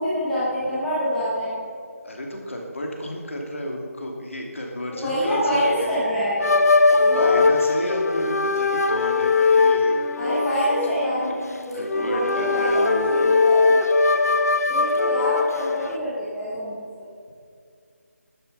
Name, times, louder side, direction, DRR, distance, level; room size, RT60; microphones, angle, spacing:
voice 1, 0.0-1.5 4.9-6.7 7.0-7.4 10.2-11.3 11.7-13.8 14.2-14.4 14.7-17.1, equal, 5° left, -10 dB, 0.9 m, -26 dB
voice 2, 2.0-6.0 6.4-6.5 6.9-10.0 10.9-11.0 11.3-11.5 11.7-13.4, left 1 dB, 55° left, 1 dB, 2.8 m, -32 dB
sound 1, 6.4-16.0, left 3 dB, 80° left, 1.1 m, -20 dB
12.0 x 10.0 x 5.5 m, 2.3 s
figure-of-eight pair, 180°, 8 cm